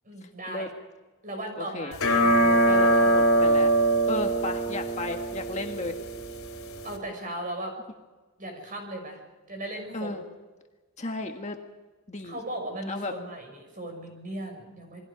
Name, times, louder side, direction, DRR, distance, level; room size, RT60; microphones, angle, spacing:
voice 1, 0.0-0.7 1.2-3.0 6.8-7.7 8.4-9.2 9.5-10.1 12.2-15.0, right 1 dB, 40° right, 3 dB, 6.5 m, -37 dB
voice 2, 1.6-1.9 2.8-3.7 4.1-6.0 9.9-10.2 11.0-11.6 12.1-12.4 12.9-13.1, left 2 dB, 30° left, 3 dB, 1.6 m, -34 dB
sound 1, 1.9-7.0, right 1 dB, 70° left, 4.1 m, -23 dB
28.0 x 21.5 x 5.2 m, 1.3 s
head